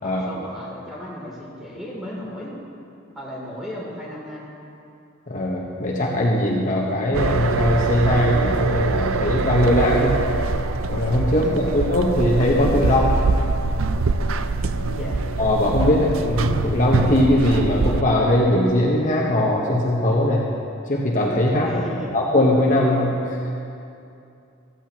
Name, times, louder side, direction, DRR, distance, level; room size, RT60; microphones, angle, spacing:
voice 1, 0.0-2.6 3.1-4.5 11.4-11.7 14.9-15.2 15.9-16.0 21.6-22.1, equal, ahead, -6 dB, 3.0 m, -35 dB
voice 2, 5.3-10.2 10.9-11.4 11.7-13.2 15.0-15.1 15.4-20.5 20.8-21.8 22.1-23.4, left 1 dB, 40° left, -4 dB, 1.2 m, -20 dB
sound 1, 7.1-18.0, right 3 dB, 85° right, 0.5 m, -23 dB
15.0 x 14.0 x 3.0 m, 2.6 s
head